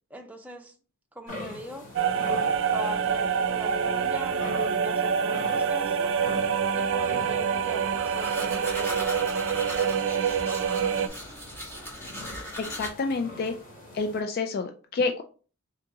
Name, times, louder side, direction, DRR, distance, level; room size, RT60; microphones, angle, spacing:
voice 1, 0.1-0.8 1.1-2.0 2.7-6.1 6.7-9.4, equal, 5° right, 0.5 m, -41 dB
sound 1, 1.3-14.2, left 2 dB, 70° left, 2.1 m, -44 dB
sound 2, 2.0-11.1, right 6 dB, 60° right, 0.4 m, -26 dB
sound 3, 7.9-12.9, equal, 10° left, 1.2 m, -38 dB
voice 2, 12.6-13.5 13.9-15.2, left 4 dB, 45° left, 0.3 m, -28 dB
3.7 x 2.9 x 3.4 m
head